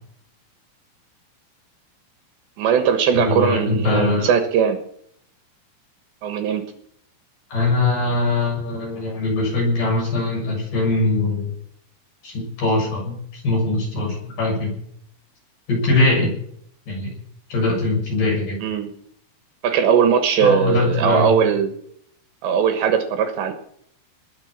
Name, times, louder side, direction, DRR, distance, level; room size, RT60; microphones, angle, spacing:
voice 1, 2.6-4.8 6.2-6.7 18.6-18.9 19.6-21.7 22.4-23.5, right 7 dB, 70° right, 7 dB, 3.3 m, -19 dB
voice 2, 3.1-4.3 7.5-11.5 12.2-14.8 15.7-16.4 16.9-17.1 17.5-18.6 20.4-21.3, left 2 dB, 45° left, -1 dB, 8.2 m, -21 dB
20.0 x 7.4 x 7.3 m, 0.66 s
omnidirectional pair, 5.6 m